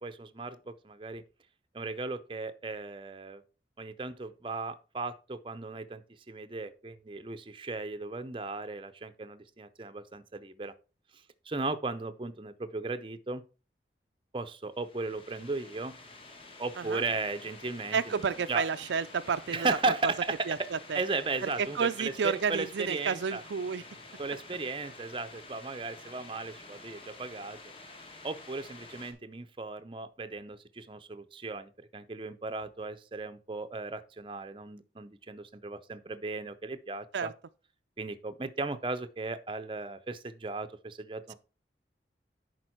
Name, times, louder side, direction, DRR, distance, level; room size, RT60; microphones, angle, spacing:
voice 1, 0.0-1.2 1.7-3.4 3.8-6.0 6.3-10.7 11.5-13.4 14.3-15.9 16.6-18.2 18.5-18.7 19.5-20.7 20.9-23.4 24.2-27.6 28.2-37.3 38.0-41.4, right 3 dB, 30° right, 0.6 m, -36 dB
sound 1, 14.7-29.1, left 3 dB, 30° left, 1.3 m, -50 dB
voice 2, 17.9-20.1 20.5-21.0 21.4-23.8 37.1-37.3, right 6 dB, 85° right, 0.4 m, -31 dB
10.5 x 4.5 x 4.4 m
head